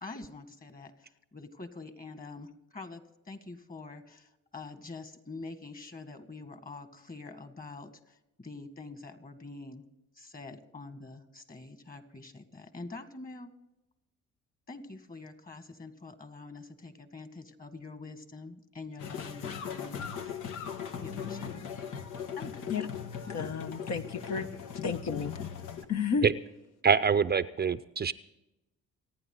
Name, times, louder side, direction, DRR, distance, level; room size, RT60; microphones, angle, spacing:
voice 1, 0.0-9.8 10.2-13.5 14.7-20.4 21.0-21.7 22.4-22.7, left 3 dB, 30° left, 9 dB, 2.0 m, -45 dB
sound 1, 19.0-25.9, left 7 dB, 85° left, 1.4 m, -39 dB
voice 2, 23.3-24.5 24.8-25.3 25.9-26.3, left 6 dB, 60° left, 6 dB, 1.2 m, -31 dB
voice 3, 26.8-28.1, right 6 dB, 35° right, 14 dB, 0.6 m, -25 dB
27.5 x 9.6 x 3.9 m, 0.94 s
cardioid pair, 90°, 30 cm